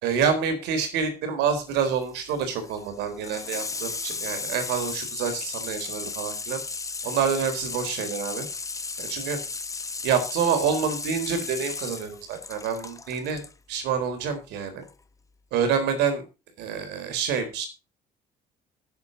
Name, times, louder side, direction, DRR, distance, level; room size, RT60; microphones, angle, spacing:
voice 1, 0.0-6.6 7.0-8.5 9.0-9.4 10.0-13.4 13.7-14.8 15.5-16.2 16.6-17.7, right 6 dB, 85° right, 7 dB, 4.0 m, -27 dB
Water tap faucet / Sink (filling or washing), 1.7-13.5 14.8-14.9, left 4 dB, 20° left, 0.9 m, -35 dB
11.0 x 8.7 x 5.3 m, 0.30 s
cardioid pair, 110°, 17 cm